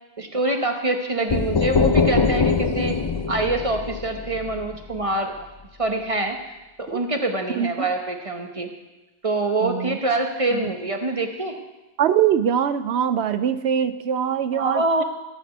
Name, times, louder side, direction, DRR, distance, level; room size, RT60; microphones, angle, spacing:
voice 1, 0.2-3.0 3.3-5.5 5.8-6.4 6.8-8.7 9.2-11.6 14.5-15.0, right 2 dB, 35° right, 4 dB, 1.0 m, -25 dB
sound 1, 1.3-5.0, left 4 dB, 30° left, 0.5 m, -23 dB
voice 2, 7.5-7.9 9.6-10.0 10.5-10.6 12.0-15.0, right 9 dB, 90° right, 11 dB, 0.9 m, -23 dB
14.5 x 5.1 x 7.9 m, 1.1 s
omnidirectional pair, 1.1 m